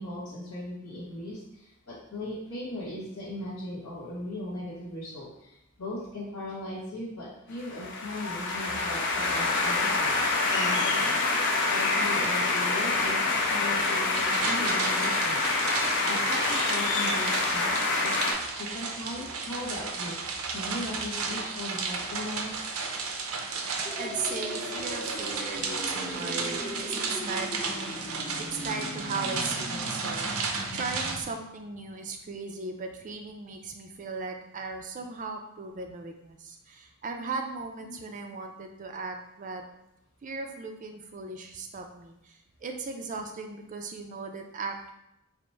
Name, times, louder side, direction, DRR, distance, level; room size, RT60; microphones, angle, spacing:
voice 1, 0.0-10.1 10.5-11.4 11.7-15.4 15.8-18.2 18.5-22.6 26.7-26.9 37.8-38.2, left 1 dB, 75° left, -8 dB, 1.6 m, -38 dB
sound 1, 7.6-18.3, left 3 dB, 55° left, 0.7 m, -26 dB
sound 2, 14.1-31.2, right 4 dB, 75° right, 0.6 m, -33 dB
sound 3, 23.8-31.2, left 1 dB, 30° left, 0.9 m, -39 dB
voice 2, 24.0-39.6 40.2-44.9, right 4 dB, 35° right, 4 dB, 0.4 m, -37 dB
5.1 x 2.1 x 4.4 m, 0.86 s
head